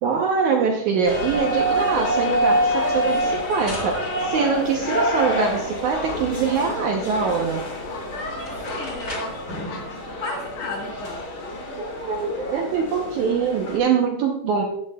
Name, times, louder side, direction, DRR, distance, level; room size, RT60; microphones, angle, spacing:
voice 1, 0.0-7.7 11.8-14.6, right 5 dB, 70° right, 2 dB, 1.8 m, -23 dB
Fowl, 1.0-10.0, left 4 dB, 90° left, 4.3 m, -43 dB
sound 1, 1.0-13.8, equal, 40° left, 1.7 m, -27 dB
sound 2, 3.0-5.3 7.8-7.9 8.3-9.5, left 1 dB, 20° left, 3.7 m, -40 dB
voice 2, 8.1-9.3 10.2-11.2, left 2 dB, 60° left, 0 dB, 1.9 m, -33 dB
14.0 x 10.5 x 2.3 m, 0.73 s
omnidirectional pair, 4.4 m